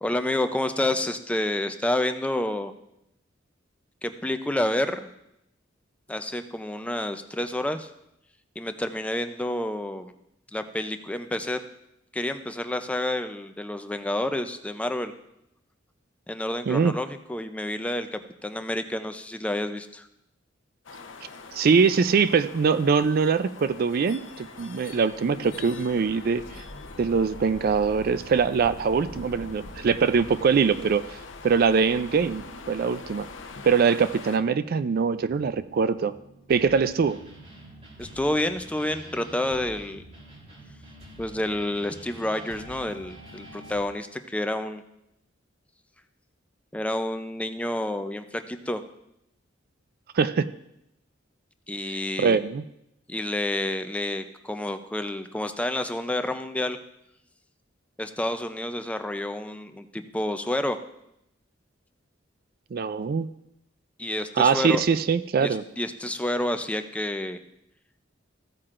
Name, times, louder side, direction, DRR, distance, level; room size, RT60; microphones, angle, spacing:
voice 1, 0.0-2.7 4.0-5.1 6.1-7.9 8.6-10.1 10.5-11.6 12.1-15.1 16.3-20.1 38.0-40.0 41.2-44.8 46.7-48.8 51.7-52.4 53.1-56.8 58.0-60.8 64.0-64.8 65.4-67.4, left 1 dB, 5° left, 8 dB, 0.5 m, -29 dB
sound 1, 20.8-34.4, left 3 dB, 80° left, 0.8 m, -43 dB
voice 2, 21.5-26.4 27.0-31.0 31.4-33.3 33.6-36.1 36.5-37.2 50.1-50.5 51.9-52.6 62.7-63.3 64.4-65.6, right 5 dB, 50° right, 13 dB, 0.4 m, -23 dB
sound 2, 32.4-43.8, right 1 dB, 35° right, 3.3 m, -47 dB
15.5 x 8.8 x 2.5 m, 0.82 s
head